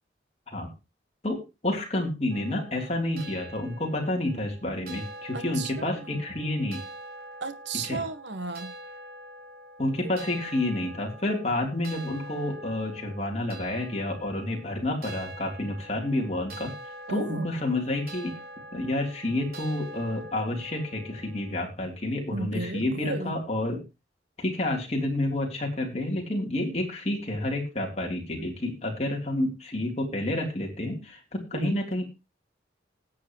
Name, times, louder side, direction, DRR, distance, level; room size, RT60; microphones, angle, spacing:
voice 1, 1.2-6.8 7.9-8.0 9.8-16.7 17.1-18.4 18.7-23.8 24.4-32.0, left 1 dB, 35° left, 3.4 m, -29 dB
sound 1, 2.3-21.7, right 1 dB, 55° right, 4.0 m, -45 dB
voice 2, 5.3-6.2 7.4-8.7 10.0-10.1 17.1-17.5 22.3-23.4 31.5-31.8, right 3 dB, 75° right, 1.6 m, -35 dB
20.0 x 7.9 x 3.1 m
head